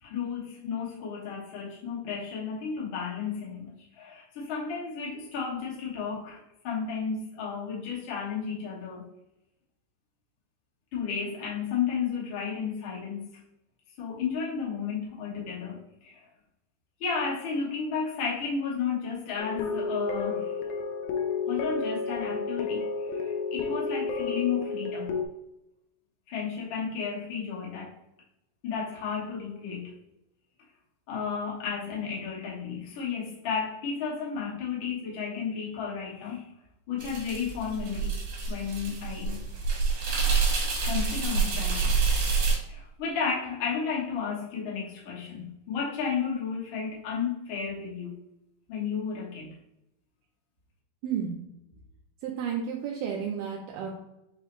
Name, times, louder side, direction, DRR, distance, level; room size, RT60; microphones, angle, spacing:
voice 1, 0.0-9.1 10.9-13.3 14.0-16.2 17.0-20.6 21.5-25.2 26.3-27.9 28.6-29.9 31.1-36.4 36.9-38.2 38.5-39.4 40.8-42.0 42.7-48.2 48.7-49.5, left 6 dB, 70° left, -5 dB, 1.2 m, -33 dB
sound 1, 19.4-25.3, left 4 dB, 85° left, 2.3 m, -31 dB
sound 2, 37.0-42.6, right 4 dB, 65° right, 2.4 m, -27 dB
voice 2, 51.0-51.4 52.2-53.9, right 7 dB, 80° right, -1 dB, 2.1 m, -32 dB
5.5 x 2.0 x 4.4 m, 0.87 s
omnidirectional pair, 4.1 m